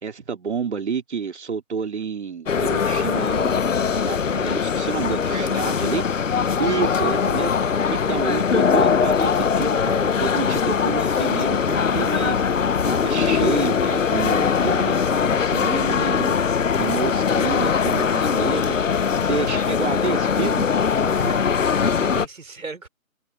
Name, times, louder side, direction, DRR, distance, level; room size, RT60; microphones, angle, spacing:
voice 1, 0.0-3.6 3.9-6.0 6.6-12.4 12.9-18.8 19.2-20.7, right 5 dB, 50° right, 3.2 m, -29 dB
sound 1, 2.5-22.3, left 6 dB, 60° left, 1.0 m, -21 dB
voice 2, 5.3-5.6 21.0-22.9, right 3 dB, 75° right, 5.1 m, -34 dB
figure-of-eight pair, 165°, 42 cm